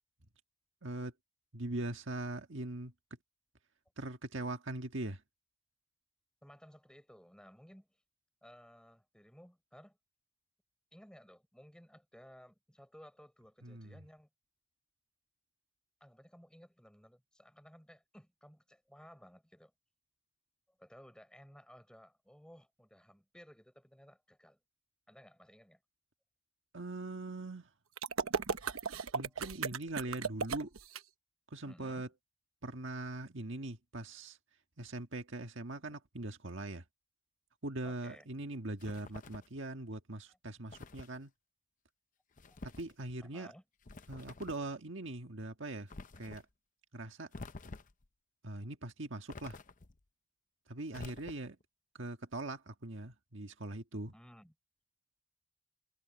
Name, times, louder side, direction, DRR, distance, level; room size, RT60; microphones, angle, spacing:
voice 1, 0.8-1.1 1.5-2.9 4.0-5.2 13.6-13.9 26.7-27.7 29.1-30.7 31.5-32.1 32.6-34.4 34.8-36.8 37.6-41.3 42.8-43.5 44.1-45.9 46.2-46.4 46.9-47.3 48.4-49.6 50.7-51.6 51.9-54.1, right 2 dB, 60° right, 1.7 m, -41 dB
voice 2, 6.4-8.0 8.4-10.0 10.9-14.3 16.0-19.7 20.7-24.6 25.1-25.8 29.3-29.5 31.7-32.1 37.8-38.3 40.3-40.4 42.5-42.6 43.2-43.6 54.1-54.5, equal, 5° left, 5.3 m, -58 dB
sound 1, 28.0-31.0, right 5 dB, 85° right, 1.1 m, -36 dB
sound 2, 38.8-39.6 40.7-41.2 42.4-42.9 43.8-44.7 45.9-46.4 47.3-48.1 49.3-50.0 50.9-51.6, left 3 dB, 40° left, 0.7 m, -49 dB
head